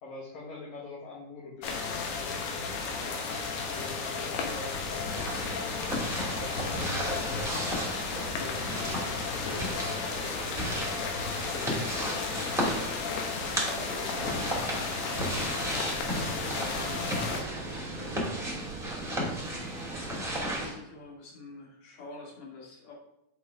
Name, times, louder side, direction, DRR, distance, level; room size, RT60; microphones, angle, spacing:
voice 1, 0.0-5.3 5.8-7.9 8.4-10.9 11.5-13.2 13.8-16.1, left 3 dB, 60° left, -4 dB, 2.2 m, -45 dB
sound 1, 1.6-17.4, left 4 dB, 75° left, 3.0 m, -34 dB
sound 2, 5.1-20.7, equal, ahead, 0.6 m, -35 dB
sound 3, 14.1-20.7, right 3 dB, 75° right, 0.8 m, -41 dB
voice 2, 17.0-18.3 18.9-19.5 20.5-22.9, left 3 dB, 40° left, -3 dB, 2.5 m, -47 dB
8.5 x 5.4 x 3.6 m, 0.87 s
omnidirectional pair, 4.7 m